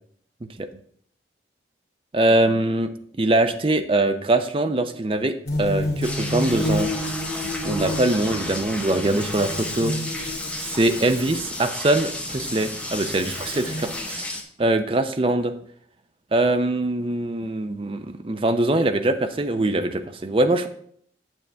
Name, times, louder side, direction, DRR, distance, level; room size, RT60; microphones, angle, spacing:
voice 1, 2.1-6.9 7.6-10.0 10.6-14.3 14.6-15.5 16.3-20.7, right 2 dB, 30° right, 9 dB, 0.5 m, -23 dB
sound 1, 5.5-11.6 12.2-14.0, left 1 dB, 65° left, 2.4 m, -30 dB
sound 2, 6.0-14.4, left 1 dB, 5° left, 0.8 m, -33 dB
8.9 x 6.8 x 3.4 m, 0.63 s
head